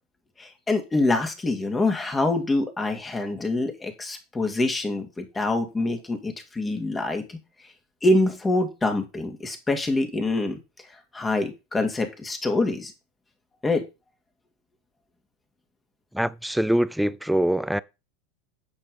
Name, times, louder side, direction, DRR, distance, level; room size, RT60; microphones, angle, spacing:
voice 1, 0.4-7.4 8.0-10.6 11.1-12.9 13.6-13.8, left 2 dB, 15° left, 2.5 m, -25 dB
voice 2, 16.1-17.8, right 1 dB, ahead, 0.5 m, -23 dB
10.0 x 4.6 x 5.3 m
hypercardioid pair, 90°, 0 cm